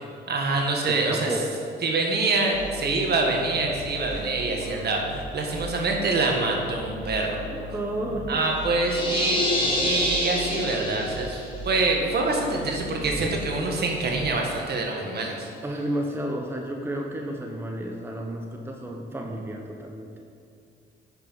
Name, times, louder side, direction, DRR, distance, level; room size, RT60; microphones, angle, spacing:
voice 1, 0.3-1.3 1.8-7.4 8.3-9.4 9.8-15.5, right 3 dB, 55° right, 0 dB, 1.6 m, -25 dB
voice 2, 0.9-1.6 7.7-8.5 15.6-20.1, right 1 dB, 10° right, 1 dB, 0.9 m, -31 dB
sound 1, 2.5-14.7, equal, 85° right, 1.9 m, -38 dB
sound 2, 8.9-11.4, left 1 dB, 25° left, 2.2 m, -26 dB
9.7 x 5.7 x 5.7 m, 2.4 s
cardioid pair, 90°, 20 cm